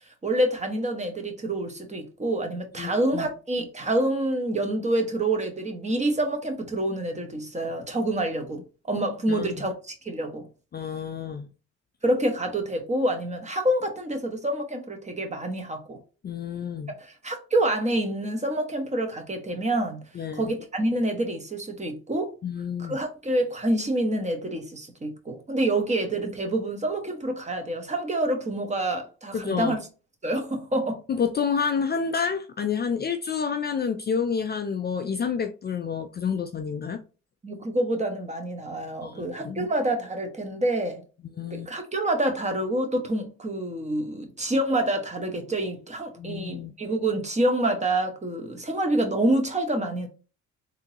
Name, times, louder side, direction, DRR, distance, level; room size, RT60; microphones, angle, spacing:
voice 1, 0.2-8.6 8.9-10.5 12.0-16.0 17.0-20.0 20.3-22.3 22.8-29.8 30.2-31.0 37.4-41.0 41.5-50.1, right 1 dB, 25° right, 1.1 m, -27 dB
voice 2, 2.8-3.3 9.3-9.6 10.7-11.5 16.2-16.9 20.1-20.5 22.4-23.0 29.3-29.8 31.1-37.0 39.0-39.7 41.4-41.7 46.2-46.7, left 6 dB, 35° left, 0.4 m, -29 dB
3.6 x 2.8 x 2.8 m
cardioid pair, 90°, 30 cm